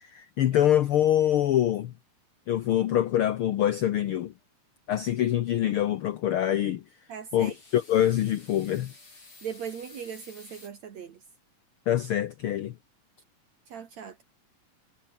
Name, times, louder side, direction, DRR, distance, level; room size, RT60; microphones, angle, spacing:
voice 1, 0.0-1.9 2.5-4.3 4.9-6.8 7.3-8.9 11.9-12.7, left 11 dB, 85° left, 1.2 m, -25 dB
voice 2, 7.1-7.6 9.4-11.2 13.7-14.2, right 7 dB, 60° right, 3.1 m, -39 dB
sound 1, 7.3-10.7, left 3 dB, 40° left, 8.8 m, -51 dB
omnidirectional pair, 3.5 m